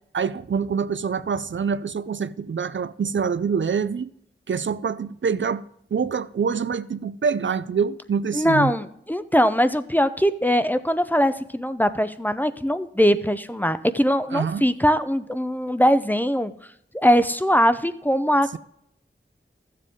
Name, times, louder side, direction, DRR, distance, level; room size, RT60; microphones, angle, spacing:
voice 1, 0.1-4.1 4.5-5.6 5.9-8.7 14.3-14.6, right 6 dB, 65° right, 0.4 m, -25 dB
voice 2, 8.3-16.5 16.9-18.6, equal, 10° left, 0.6 m, -21 dB
14.0 x 7.5 x 3.6 m
wide cardioid pair, 50°, 21 cm